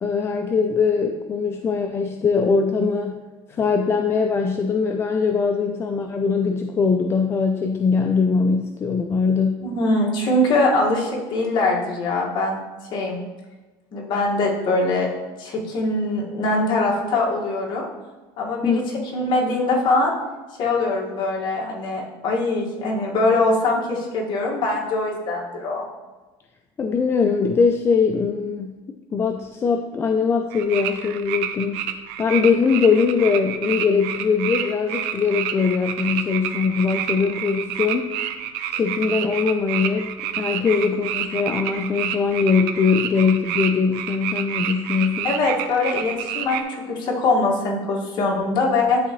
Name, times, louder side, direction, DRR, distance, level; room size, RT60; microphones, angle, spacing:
voice 1, 0.0-3.2 3.5-9.6 18.6-19.1 26.8-28.7 29.1-31.8 32.2-38.1 38.7-45.3, left 5 dB, 25° left, 4 dB, 0.4 m, -21 dB
voice 2, 9.6-12.6 12.9-13.2 13.9-15.1 15.4-17.8 18.4-18.8 19.1-20.1 20.6-25.8 45.2-49.0, left 2 dB, 50° left, -3 dB, 1.8 m, -22 dB
sound 1, 30.5-46.6, right 10 dB, 85° right, 0.6 m, -28 dB
11.0 x 3.7 x 3.1 m, 1.2 s
cardioid pair, 140°, 11 cm